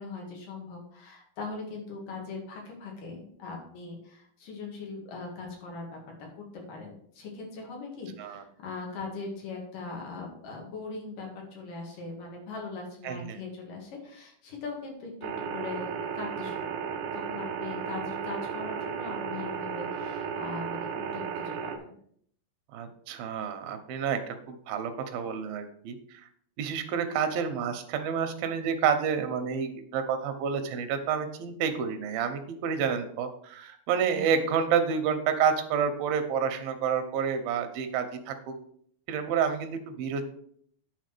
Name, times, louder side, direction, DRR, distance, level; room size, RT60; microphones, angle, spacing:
voice 1, 0.0-6.0 6.4-22.0, left 4 dB, 70° left, 0 dB, 3.6 m, -40 dB
voice 2, 13.0-13.4 22.7-26.2 26.6-38.5 39.1-40.3, right 7 dB, 90° right, 8 dB, 2.8 m, -29 dB
sound 1, 15.2-21.8, right 7 dB, 70° right, 2.2 m, -34 dB
9.5 x 4.0 x 6.6 m, 0.64 s
omnidirectional pair, 4.0 m